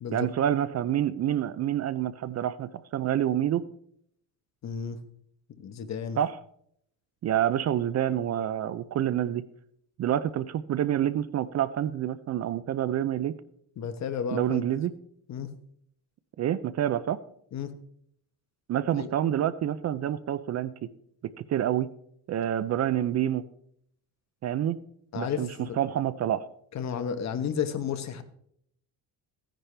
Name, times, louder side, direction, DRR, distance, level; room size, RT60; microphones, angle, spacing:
voice 1, 0.1-3.6 6.2-6.4 7.2-9.4 10.0-13.3 14.3-14.9 16.4-17.2 18.7-20.7 21.2-21.9 22.3-23.4 24.4-24.8 25.2-25.5 25.8-26.5, right 11 dB, 45° right, 16 dB, 0.4 m, -27 dB
voice 2, 4.6-5.0 5.6-6.2 13.8-14.6 15.3-15.5 17.5-17.7 18.9-19.1 25.1-25.8 26.7-28.2, left 7 dB, 45° left, 10 dB, 1.1 m, -32 dB
15.0 x 10.0 x 3.3 m, 0.69 s
cardioid pair, 155°, 38 cm